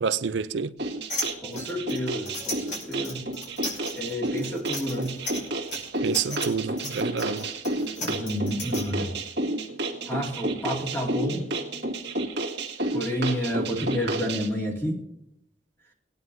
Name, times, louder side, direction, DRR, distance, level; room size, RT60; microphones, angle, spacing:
voice 1, 0.0-0.7 6.0-7.5, right 6 dB, 90° right, 0.5 m, -28 dB
sound 1, 0.8-14.5, right 2 dB, 75° right, 1.8 m, -31 dB
sound 2, 1.1-8.8, left 1 dB, 45° left, 4.3 m, -35 dB
voice 2, 1.4-3.3 3.9-5.2 8.0-9.1 10.1-11.5 12.9-15.0, equal, 15° left, 2.5 m, -30 dB
21.5 x 9.4 x 2.7 m
head